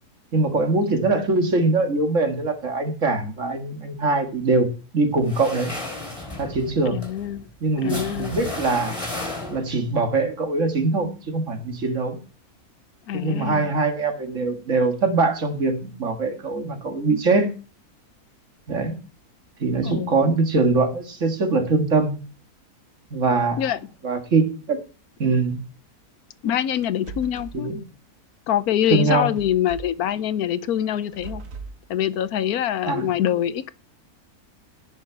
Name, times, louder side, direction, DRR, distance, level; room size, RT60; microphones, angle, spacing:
voice 1, 0.3-4.7 4.9-5.7 6.4-7.0 7.6-9.0 9.5-12.2 13.1-17.5 18.7-19.0 19.6-22.1 23.1-23.7 24.0-24.8 25.2-25.6 27.5-27.8 28.9-29.3 32.9-33.1, right 3 dB, 55° right, 2.0 m, -22 dB
sound 1, 5.2-9.9, left 2 dB, 20° left, 4.2 m, -34 dB
voice 2, 6.9-7.5 7.8-8.4 13.1-13.7 19.8-20.3 23.6-23.8 26.4-27.7 28.5-31.4 31.9-33.7, left 10 dB, 80° left, 1.2 m, -24 dB
sound 2, 26.7-27.6 29.4-30.0 31.0-31.8, right 4 dB, 90° right, 1.9 m, -39 dB
17.0 x 6.6 x 4.6 m
omnidirectional pair, 1.6 m